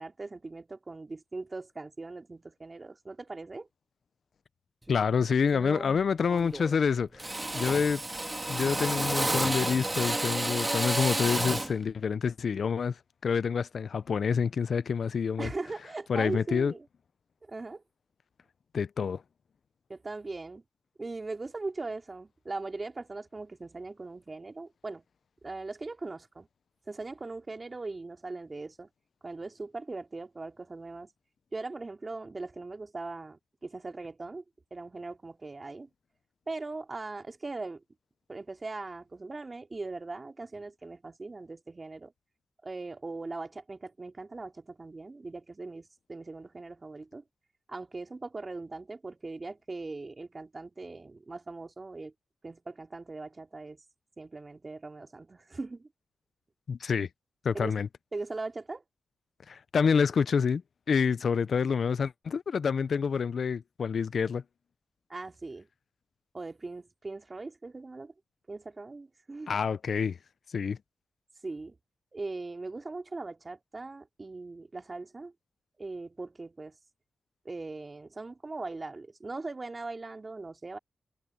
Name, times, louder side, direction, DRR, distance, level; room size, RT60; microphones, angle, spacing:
voice 1, 0.0-3.7 15.4-16.9 17.4-17.8 19.9-20.6 21.0-25.0 25.4-26.5 26.9-28.9 29.2-31.1 31.5-34.4 34.7-35.9 36.5-37.8 38.3-42.1 42.6-47.2 47.7-52.1 52.4-53.8 54.2-55.9 57.5-57.7 58.1-58.8 65.1-65.7 66.3-68.1 68.5-69.6 71.4-71.7 72.1-75.3 75.8-76.7 77.4-80.8, right 3 dB, 35° right, 3.3 m, -40 dB
voice 2, 4.9-8.0 8.5-12.9 13.2-15.5 16.1-16.7 18.7-19.2 56.7-57.1 57.4-57.9 59.5-60.6 60.9-64.4 69.5-70.2 70.5-70.8, left 6 dB, 65° left, 0.6 m, -27 dB
Drill, 4.9-5.1 5.5-6.0 6.3-6.8 7.2-11.8, right 1 dB, 20° right, 2.5 m, -31 dB
cardioid pair, 50°, 0 cm